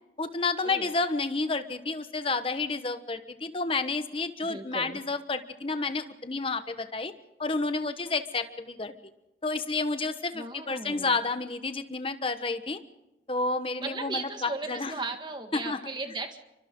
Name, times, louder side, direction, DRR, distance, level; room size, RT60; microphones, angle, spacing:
voice 1, 0.2-7.1 7.4-8.9 9.4-12.8 13.3-14.9 15.5-15.8, left 3 dB, 30° left, 9 dB, 1.1 m, -30 dB
voice 2, 4.4-5.0 10.3-11.2 13.8-16.4, right 3 dB, 25° right, 6 dB, 1.8 m, -37 dB
29.0 x 24.5 x 3.8 m, 0.95 s
head